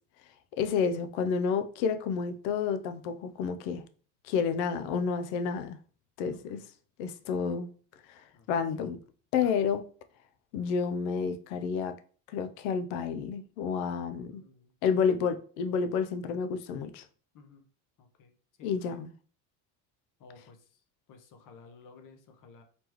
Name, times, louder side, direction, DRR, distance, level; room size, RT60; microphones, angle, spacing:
voice 1, 0.6-3.8 4.3-5.8 6.2-6.6 7.0-7.7 8.5-9.0 9.3-9.8 10.5-12.0 12.3-14.4 14.8-17.0 18.6-19.1, left 6 dB, 75° left, 0.7 m, -30 dB
voice 2, 6.3-6.6 8.3-8.5 9.4-9.5 14.3-14.7 17.3-17.6 18.0-18.3 18.6-18.7 20.2-20.6 21.1-22.6, left 4 dB, 50° left, 1.0 m, -54 dB
4.2 x 3.3 x 3.0 m
supercardioid pair, 105°, 41 cm